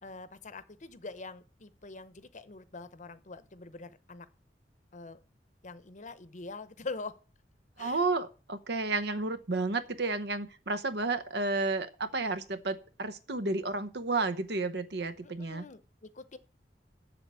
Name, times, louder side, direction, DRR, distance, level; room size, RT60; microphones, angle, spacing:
voice 1, 0.0-4.3 4.9-5.2 5.6-7.2 7.8-8.0 15.4-16.4, left 3 dB, 45° left, 13 dB, 0.8 m, -44 dB
voice 2, 7.8-15.6, right 3 dB, 65° right, 11 dB, 0.9 m, -32 dB
7.9 x 6.9 x 8.2 m, 0.36 s
head